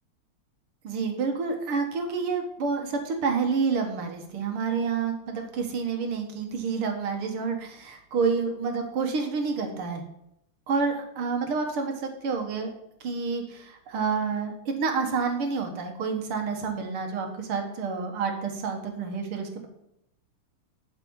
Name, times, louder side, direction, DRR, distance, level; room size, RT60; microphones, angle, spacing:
voice 1, 0.8-10.0 10.7-12.7 13.0-19.7, right 5 dB, 80° right, 4 dB, 2.4 m, -29 dB
11.0 x 6.9 x 4.7 m, 0.79 s
omnidirectional pair, 2.4 m